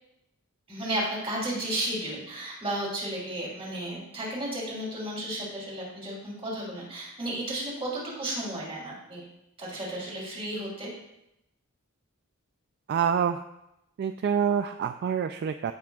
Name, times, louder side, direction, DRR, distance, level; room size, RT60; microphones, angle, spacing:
voice 1, 0.7-9.2 9.6-10.9, right 1 dB, 25° right, -4 dB, 3.1 m, -33 dB
voice 2, 12.9-13.4 14.0-15.7, right 7 dB, 50° right, 9 dB, 0.3 m, -26 dB
14.5 x 6.0 x 2.3 m, 0.86 s
head